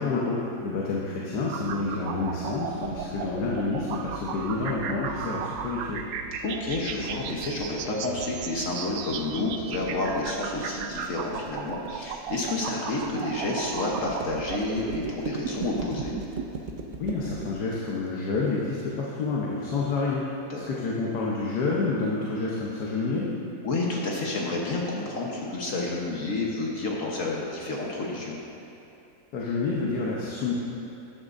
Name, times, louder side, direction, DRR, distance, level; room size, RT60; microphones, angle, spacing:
voice 1, 0.0-6.0 17.0-20.2 20.7-23.3 29.3-30.5, left 3 dB, 90° left, -4 dB, 1.6 m, -28 dB
sound 1, 1.5-16.5, right 7 dB, 70° right, 0.9 m, -36 dB
voice 2, 6.4-16.1 20.5-20.6 23.6-28.4, left 2 dB, 55° left, -3 dB, 1.4 m, -30 dB
sound 2, 7.3-18.8, right 3 dB, 50° right, 0.6 m, -40 dB
13.5 x 10.5 x 2.6 m, 2.8 s
omnidirectional pair, 1.7 m